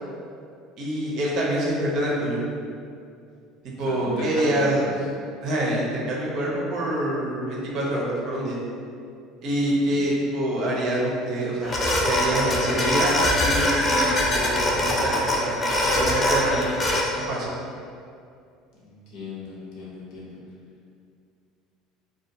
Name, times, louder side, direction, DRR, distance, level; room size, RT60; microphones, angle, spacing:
voice 1, 0.8-2.4 3.8-4.8 5.4-8.6 9.4-11.8 12.0-16.7 17.3-17.5, right 1 dB, 60° right, -4 dB, 0.6 m, -26 dB
voice 2, 3.8-4.9 9.8-10.0 18.8-20.4, left 2 dB, 70° left, -6 dB, 0.7 m, -36 dB
sound 1, 11.6-17.0, left 1 dB, 30° left, 0.4 m, -23 dB
2.3 x 2.2 x 2.6 m, 2.4 s
supercardioid pair, 100°, 0 cm